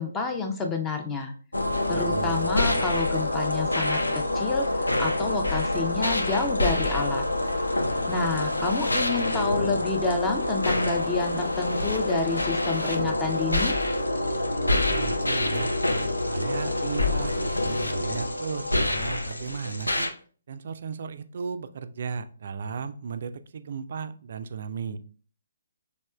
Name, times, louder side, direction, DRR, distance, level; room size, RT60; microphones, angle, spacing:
voice 1, 0.0-1.3 1.9-7.2 8.1-13.7, left 4 dB, 15° left, 3 dB, 0.4 m, -29 dB
sound 1, 1.5-20.1, left 1 dB, 90° left, 0.4 m, -26 dB
voice 2, 1.9-2.4 14.6-15.7 16.3-20.1 20.5-25.0, right 5 dB, 50° right, 10 dB, 0.3 m, -35 dB
4.2 x 2.9 x 2.2 m, 0.41 s
figure-of-eight pair, 140°, 0 cm